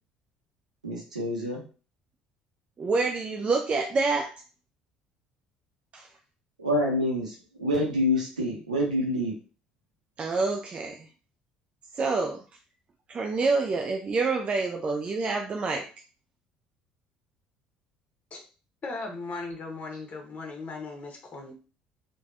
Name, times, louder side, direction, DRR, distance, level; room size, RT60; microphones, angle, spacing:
voice 1, 0.8-1.6 6.6-9.3, left 1 dB, 90° right, -3 dB, 0.6 m, -27 dB
voice 2, 2.8-4.4 5.9-6.1 10.2-11.1 11.9-12.4 13.1-15.9, right 3 dB, 35° right, 3 dB, 0.4 m, -27 dB
voice 3, 18.8-21.5, left 3 dB, 40° left, 2 dB, 0.9 m, -37 dB
3.2 x 2.2 x 2.4 m, 0.36 s
figure-of-eight pair, 60°, 4 cm